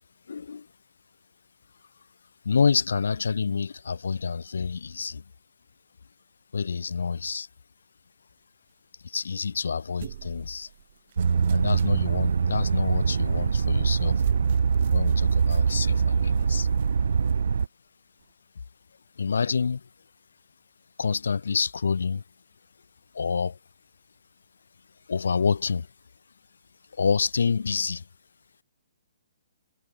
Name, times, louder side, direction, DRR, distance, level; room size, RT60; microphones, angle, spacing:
voice 1, 0.3-0.7 2.4-5.2 6.5-7.5 9.0-10.7 11.5-14.2 14.9-16.7 19.2-19.9 21.0-22.2 23.1-23.6 25.1-25.9 27.0-28.0, left 5 dB, 90° left, 5.0 m, -27 dB
sound 1, 10.0-12.0 13.5-13.7 14.0-17.7 18.2-18.3, right 11 dB, 45° right, 2.2 m, -40 dB
sound 2, 11.2-17.7, right 6 dB, 85° right, 0.5 m, -23 dB
hypercardioid pair, 160°, 0 cm